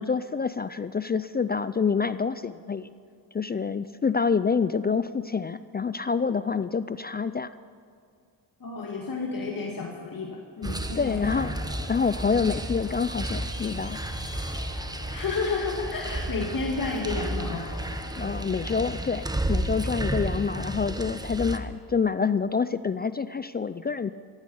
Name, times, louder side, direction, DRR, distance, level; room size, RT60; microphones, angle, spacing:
voice 1, 0.0-2.9 3.3-7.5 11.0-11.6 11.9-14.0 18.2-24.1, left 5 dB, 25° left, 14 dB, 0.3 m, -27 dB
voice 2, 8.6-11.3 15.1-17.7, left 4 dB, 45° left, 0 dB, 2.0 m, -31 dB
sound 1, 10.6-21.6, right 1 dB, 10° right, 1.0 m, -32 dB
Crowd, 11.1-19.2, left 9 dB, 75° left, 1.0 m, -47 dB
15.5 x 15.0 x 5.6 m, 2.3 s
cardioid pair, 75°, 46 cm